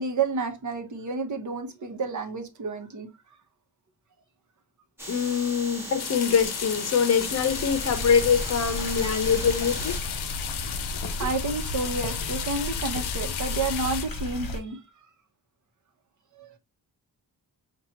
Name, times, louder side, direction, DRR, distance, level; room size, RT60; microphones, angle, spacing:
voice 1, 0.0-3.1 9.0-9.1 10.7-10.9 11.2-14.8 16.4-16.5, right 4 dB, 50° right, 1.1 m, -30 dB
sound 1, 5.0-10.0, equal, 5° right, 1.5 m, -38 dB
voice 2, 5.1-9.9, left 6 dB, 40° left, 0.9 m, -24 dB
sound 2, 6.0-14.1, left 9 dB, 80° left, 0.7 m, -34 dB
sound 3, 7.1-14.6, left 2 dB, 60° left, 1.0 m, -34 dB
5.6 x 2.6 x 2.9 m
wide cardioid pair, 135°, 39 cm